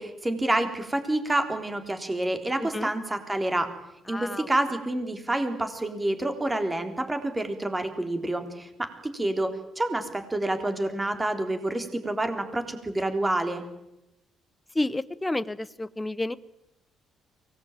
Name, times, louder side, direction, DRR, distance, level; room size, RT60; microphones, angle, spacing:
voice 1, 0.0-3.7 4.1-13.6, right 1 dB, 15° right, 7 dB, 3.6 m, -28 dB
voice 2, 2.6-2.9 4.1-4.5 14.7-16.4, left 2 dB, 15° left, 15 dB, 0.8 m, -30 dB
24.0 x 19.0 x 9.1 m, 0.89 s
cardioid pair, 95°, 0 cm